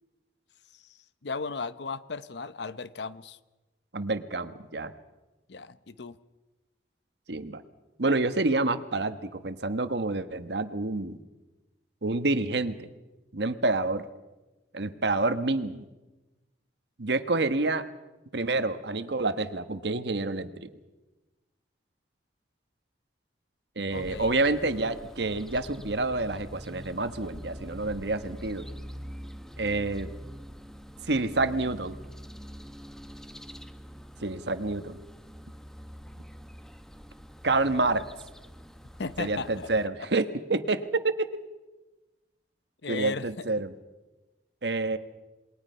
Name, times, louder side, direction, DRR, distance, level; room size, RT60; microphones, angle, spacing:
voice 1, 1.2-3.4 5.5-6.2 23.9-24.3 39.0-39.7 40.0-40.1 42.8-43.5, left 4 dB, 75° left, 15 dB, 0.8 m, -36 dB
voice 2, 3.9-4.9 7.3-7.6 8.0-11.2 12.0-12.9 13.3-14.1 14.7-15.8 17.0-17.9 18.3-20.7 23.8-28.7 29.6-30.1 31.0-32.0 34.2-35.0 37.4-38.1 39.2-41.3 42.9-43.7 44.6-45.0, right 2 dB, 70° right, 11 dB, 1.2 m, -28 dB
sound 1, 23.9-39.9, equal, 5° left, 0.8 m, -44 dB
28.0 x 21.5 x 5.6 m, 1.1 s
head